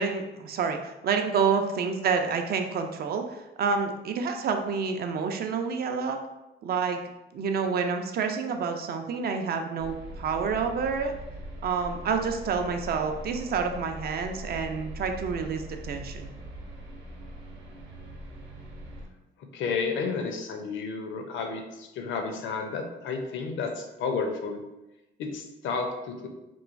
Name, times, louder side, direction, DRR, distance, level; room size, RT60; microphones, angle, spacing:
voice 1, 0.0-6.2 6.6-7.0 7.3-11.1 11.6-16.3, right 5 dB, 50° right, 5 dB, 0.4 m, -28 dB
sound 1, 9.8-19.0, right 1 dB, 70° right, 0.7 m, -41 dB
voice 2, 19.5-24.6 25.2-26.3, left 4 dB, 75° left, 3 dB, 0.5 m, -31 dB
3.0 x 2.2 x 2.4 m, 0.98 s
cardioid pair, 90°, 20 cm